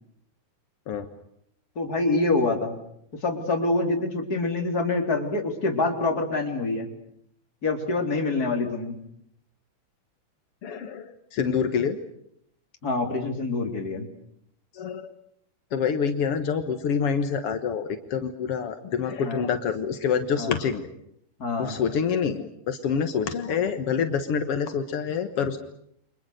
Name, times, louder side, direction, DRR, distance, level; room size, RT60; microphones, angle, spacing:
voice 1, 1.8-2.8 3.1-6.9 7.6-9.0 12.8-14.1 19.2-19.4 20.4-20.5 21.4-21.8, left 3 dB, 25° left, 3 dB, 3.8 m, -26 dB
voice 2, 10.6-12.0 14.7-15.1 15.7-20.9 21.6-25.6, left 6 dB, 65° left, 7 dB, 1.4 m, -27 dB
30.0 x 25.5 x 6.6 m, 0.71 s
omnidirectional pair, 4.8 m